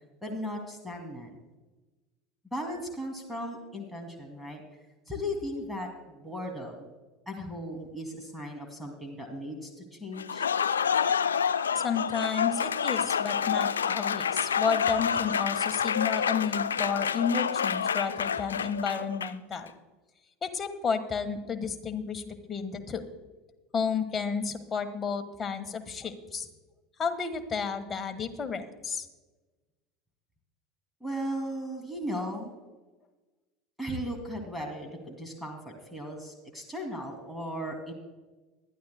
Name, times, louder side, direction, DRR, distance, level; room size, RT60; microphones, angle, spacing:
voice 1, 0.2-1.4 2.5-4.6 5.1-6.9 7.3-10.5 31.0-32.5 33.8-37.9, equal, ahead, 3 dB, 2.5 m, -37 dB
Applause, 10.2-19.5, left 7 dB, 80° left, 0.3 m, -28 dB
voice 2, 11.7-19.7 20.4-23.1 23.7-26.5 27.0-29.1, left 6 dB, 25° left, 7 dB, 1.4 m, -31 dB
21.5 x 12.0 x 2.2 m, 1.2 s
figure-of-eight pair, 75°, 0 cm